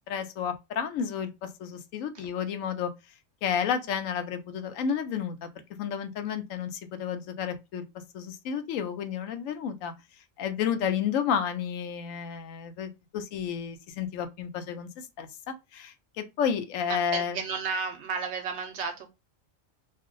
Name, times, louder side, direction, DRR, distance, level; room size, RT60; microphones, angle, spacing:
voice 1, 0.1-2.9 3.4-5.5 5.8-7.8 8.1-9.9 10.4-14.9 15.2-17.4, left 7 dB, 80° left, 1.0 m, -31 dB
voice 2, 16.9-19.1, right 5 dB, 65° right, 0.8 m, -33 dB
2.6 x 2.1 x 3.6 m
omnidirectional pair, 1.3 m